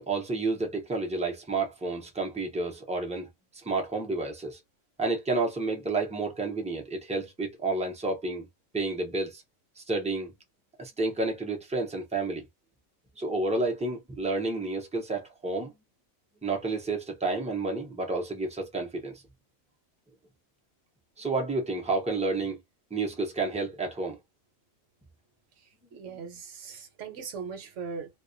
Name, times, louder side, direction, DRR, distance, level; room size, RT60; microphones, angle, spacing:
voice 1, 0.0-4.6 5.0-8.5 8.7-9.4 9.8-10.3 10.8-12.4 13.2-15.7 16.4-19.2 21.2-22.6 22.9-24.2 26.1-26.2, right 3 dB, 10° right, 0.3 m, -30 dB
voice 2, 25.9-28.1, right 5 dB, 65° right, 1.0 m, -39 dB
2.3 x 2.2 x 2.5 m
omnidirectional pair, 1.4 m